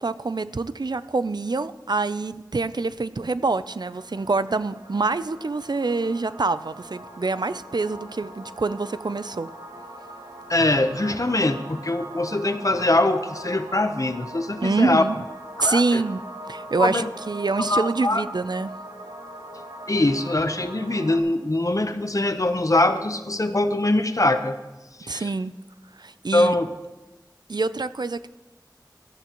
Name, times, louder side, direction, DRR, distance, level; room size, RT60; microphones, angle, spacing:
voice 1, 0.0-9.5 14.6-15.2 15.6-16.2 16.5-18.7 25.1-25.5 26.0-26.5 27.5-28.3, right 3 dB, 70° right, 14 dB, 0.4 m, -26 dB
sound 1, 3.5-21.2, right 1 dB, 85° right, 2.7 m, -41 dB
voice 2, 10.5-15.0 15.6-16.0 16.8-17.1 17.6-18.2 19.9-24.6 25.0-25.3 26.3-26.7, left 2 dB, 45° left, 9 dB, 0.8 m, -22 dB
17.0 x 13.5 x 3.0 m, 1.1 s
wide cardioid pair, 45°, 8 cm